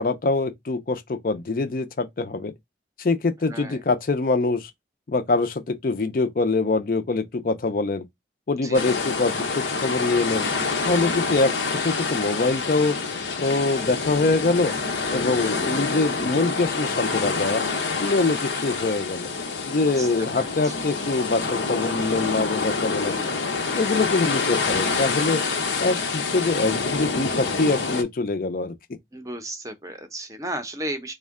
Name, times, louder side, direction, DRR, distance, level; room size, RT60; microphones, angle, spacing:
voice 1, 0.0-2.5 3.0-4.7 5.1-8.1 8.5-10.5 10.8-13.0 13.4-14.7 15.1-17.6 18.0-19.3 19.7-23.1 23.8-25.4 25.8-28.7, left 3 dB, 50° left, 0.5 m, -24 dB
voice 2, 3.5-3.8 8.6-8.9 19.7-20.1 20.3-20.7 23.1-23.4 29.1-31.1, right 1 dB, 20° right, 0.6 m, -35 dB
sound 1, 8.7-28.0, left 4 dB, 85° left, 0.7 m, -27 dB
3.5 x 2.2 x 3.5 m
head